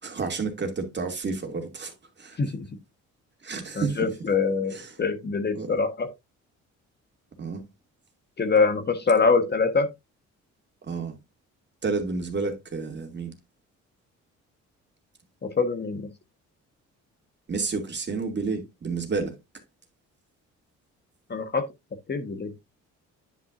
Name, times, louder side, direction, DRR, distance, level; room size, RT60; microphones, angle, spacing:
voice 1, 0.0-2.4 3.4-4.1 4.7-4.9 5.5-5.8 7.4-7.6 10.9-11.1 11.8-13.3 17.5-19.4, right 4 dB, 35° right, 2.5 m, -30 dB
voice 2, 3.7-6.1 8.4-9.9 15.4-16.1 21.3-21.7 22.1-22.5, left 4 dB, 35° left, 1.3 m, -24 dB
10.0 x 5.9 x 2.5 m
cardioid pair, 90°, 30 cm